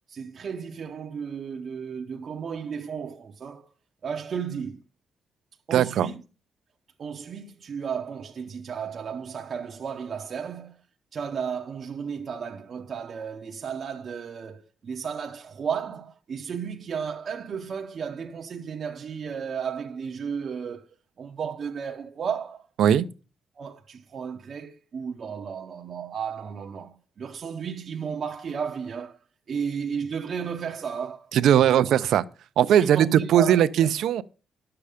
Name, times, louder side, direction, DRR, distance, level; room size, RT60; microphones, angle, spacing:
voice 1, 0.1-3.7 4.0-4.8 5.7-6.2 7.0-10.8 11.1-20.9 21.2-22.7 23.6-29.2 29.5-31.3 31.6-31.9 32.6-33.9, right 7 dB, 40° right, 0.7 m, -34 dB
voice 2, 5.7-6.1 22.8-23.1 31.3-32.2 32.6-34.2, right 10 dB, 75° right, 0.6 m, -19 dB
11.5 x 6.9 x 4.9 m
cardioid pair, 170°, 0 cm